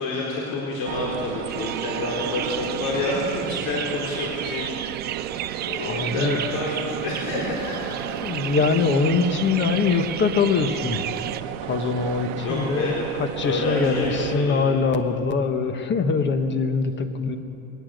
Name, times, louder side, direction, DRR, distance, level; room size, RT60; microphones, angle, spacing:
voice 1, 0.0-4.7 5.7-8.5 12.4-13.0 13.4-14.6, left 3 dB, 60° left, -4 dB, 4.2 m, -28 dB
sound 1, 0.9-14.4, right 12 dB, 70° right, 1.0 m, -33 dB
sound 2, 1.5-11.4, right 12 dB, 25° right, 0.4 m, -34 dB
voice 2, 5.8-6.4 7.9-11.2 11.6-17.4, left 4 dB, 25° left, 8 dB, 1.3 m, -23 dB
21.5 x 18.5 x 6.6 m, 2.8 s
supercardioid pair, 145°, 44 cm